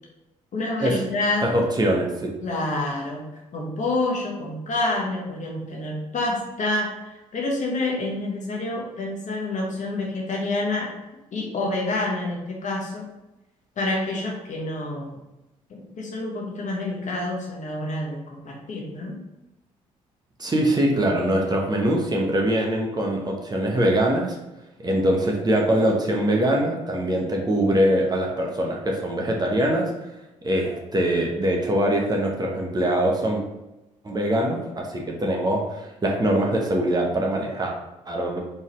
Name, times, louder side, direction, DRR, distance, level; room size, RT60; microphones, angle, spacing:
voice 1, 0.5-1.5 2.4-3.2 3.5-10.9 11.3-13.0 13.8-15.2 15.7-19.2, left 2 dB, 45° left, -1 dB, 1.3 m, -28 dB
voice 2, 1.4-2.3 20.4-24.4 24.8-29.9 30.4-33.4 34.0-37.7 38.1-38.4, right 1 dB, 25° right, 0 dB, 1.0 m, -23 dB
4.3 x 3.6 x 3.1 m, 0.97 s
figure-of-eight pair, 45°, 17 cm